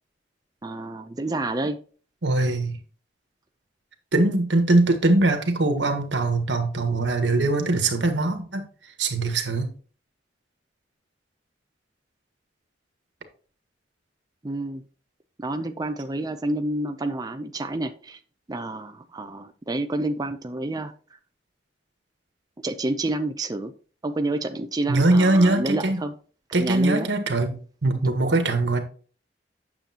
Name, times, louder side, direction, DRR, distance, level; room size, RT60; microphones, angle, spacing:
voice 1, 0.6-1.8 14.4-14.8 15.4-18.2 18.5-20.9 22.6-23.7 24.0-26.1 26.6-27.1, right 2 dB, 20° right, 0.5 m, -29 dB
voice 2, 2.2-2.8 4.1-8.6 9.0-9.7 24.9-26.0 26.5-28.8, right 2 dB, 85° right, 1.5 m, -22 dB
9.1 x 7.0 x 2.9 m
head